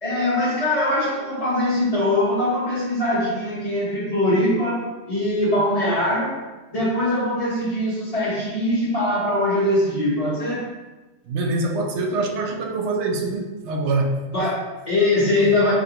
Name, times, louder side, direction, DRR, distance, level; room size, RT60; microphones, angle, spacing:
voice 1, 0.0-6.4 6.7-10.6 14.3-15.7, left 1 dB, 35° left, -7 dB, 1.2 m, -22 dB
voice 2, 11.3-14.2 15.4-15.5, right 2 dB, 80° right, 2 dB, 0.9 m, -24 dB
4.3 x 2.8 x 2.9 m, 1.2 s
omnidirectional pair, 1.2 m